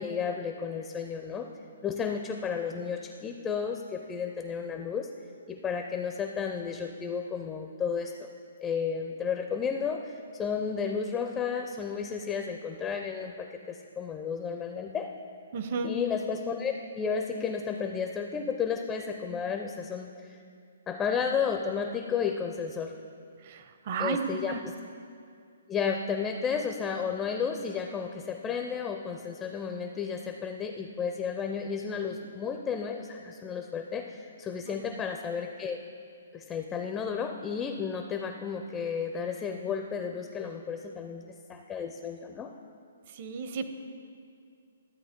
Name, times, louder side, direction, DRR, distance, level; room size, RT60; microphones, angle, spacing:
voice 1, 0.0-1.5 1.8-5.1 5.5-8.3 8.6-15.1 15.8-20.4 20.9-22.9 24.0-24.7 25.7-35.8 36.3-42.5, left 6 dB, 15° left, 4 dB, 0.4 m, -32 dB
voice 2, 15.5-15.9 23.5-24.6 34.7-34.8 43.2-43.7, right 5 dB, 45° right, 8 dB, 0.7 m, -33 dB
12.5 x 8.0 x 3.6 m, 2.3 s
hypercardioid pair, 150°, 0 cm